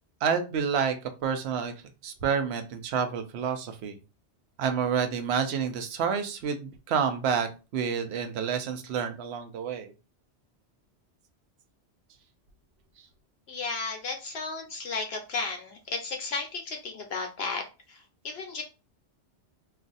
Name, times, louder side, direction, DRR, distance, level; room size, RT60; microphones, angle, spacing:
voice 1, 0.2-1.7 2.0-4.0 4.6-9.9, right 7 dB, 70° right, 7 dB, 0.8 m, -29 dB
voice 2, 13.5-18.6, left 4 dB, 65° left, 3 dB, 0.8 m, -34 dB
2.4 x 2.4 x 3.9 m, 0.31 s
omnidirectional pair, 1.2 m